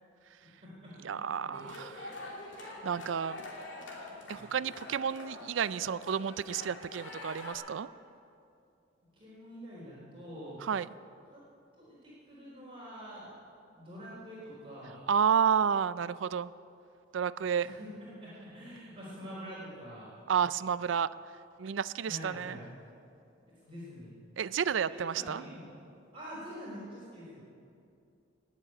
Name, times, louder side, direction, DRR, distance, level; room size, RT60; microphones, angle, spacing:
voice 1, 0.3-1.6 4.3-4.4 9.1-10.6 11.3-11.4 11.7-13.3 13.7-15.1 17.6-17.9 18.2-20.1 22.0-22.7 23.6-24.2 24.9-25.6 26.1-27.4, equal, 30° right, -8 dB, 4.0 m, -46 dB
voice 2, 1.0-2.1 2.8-3.5 4.3-7.9 10.6-10.9 15.1-16.5 17.1-17.8 20.3-21.1 21.6-22.6 24.4-25.4, right 7 dB, 75° right, 17 dB, 0.4 m, -31 dB
sound 1, 1.5-7.6, left 2 dB, 70° left, 2.9 m, -45 dB
19.5 x 7.4 x 8.7 m, 2.5 s
head